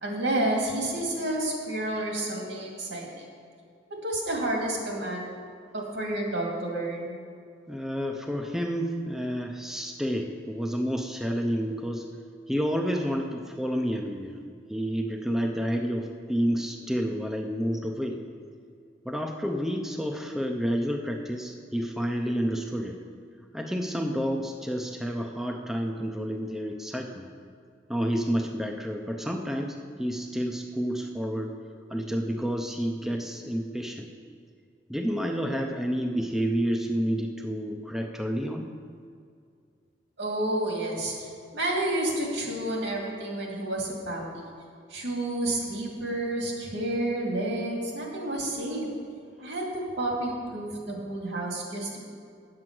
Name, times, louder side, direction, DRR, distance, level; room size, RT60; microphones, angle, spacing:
voice 1, 0.0-3.2 4.0-5.3 5.7-7.2 40.2-44.4 44.9-48.9 49.4-52.0, right 1 dB, 75° right, -1 dB, 2.3 m, -30 dB
voice 2, 7.7-12.1 12.5-14.4 14.7-18.2 19.1-23.0 23.5-27.3 27.9-31.6 31.9-34.1 34.9-38.7, equal, ahead, 2 dB, 0.5 m, -29 dB
8.9 x 7.7 x 6.0 m, 2.3 s
head